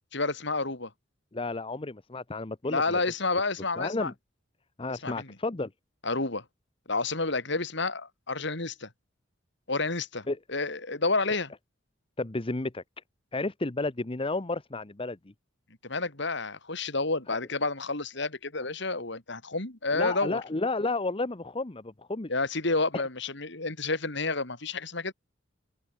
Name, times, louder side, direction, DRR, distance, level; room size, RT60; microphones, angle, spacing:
voice 1, 0.1-0.9 2.7-4.1 4.9-5.4 6.0-6.4 6.9-8.9 9.7-11.5 15.8-20.4 22.3-25.1, left 3 dB, 65° left, 3.6 m, -30 dB
voice 2, 1.3-3.0 3.8-4.1 4.8-5.7 10.3-10.4 12.2-12.8 13.3-15.2 17.3-17.4 19.9-22.3, left 2 dB, 30° left, 0.9 m, -32 dB
open air
head